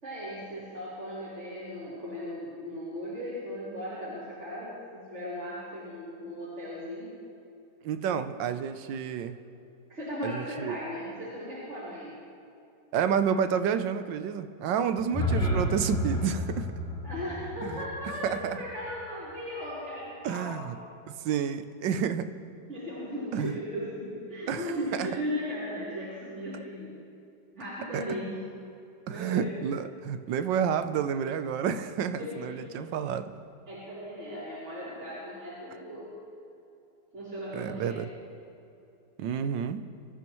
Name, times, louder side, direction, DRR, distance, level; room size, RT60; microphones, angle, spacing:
voice 1, 0.0-7.2 9.9-12.1 17.0-20.6 22.7-27.0 27.5-28.3 29.1-29.5 32.1-32.8 33.7-36.1 37.1-38.0, equal, 40° right, -12 dB, 4.3 m, -37 dB
voice 2, 7.8-9.4 10.2-10.8 12.9-16.7 17.6-17.7 18.2-18.6 20.2-20.7 21.2-22.3 23.3-23.5 24.5-24.7 25.0-25.1 27.9-28.0 29.1-33.3 37.5-38.1 39.2-39.8, right 7 dB, 90° right, 10 dB, 1.4 m, -29 dB
sound 1, 15.0-19.0, left 1 dB, 5° left, 2.6 m, -31 dB
25.0 x 14.0 x 3.1 m, 2.8 s
omnidirectional pair, 1.9 m